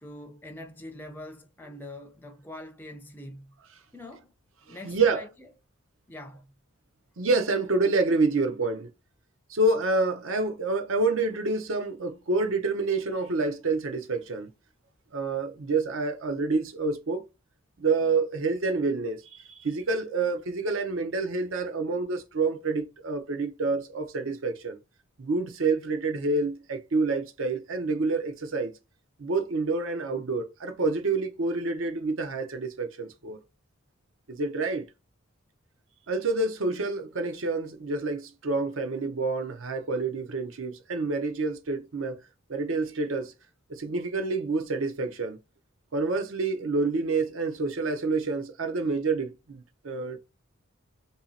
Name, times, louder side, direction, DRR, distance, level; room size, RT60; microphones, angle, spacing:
voice 1, 0.0-3.6 3.9-4.3 4.7-5.5 6.1-6.5, left 1 dB, 10° left, 0.4 m, -43 dB
voice 2, 4.7-5.2 7.2-8.9 9.5-14.5 15.1-17.2 17.8-24.8 25.2-28.7 29.2-33.4 34.3-34.8 36.1-42.1 42.5-43.3 43.7-45.4 45.9-50.2, right 3 dB, 70° right, 0.6 m, -28 dB
2.8 x 2.7 x 4.0 m
head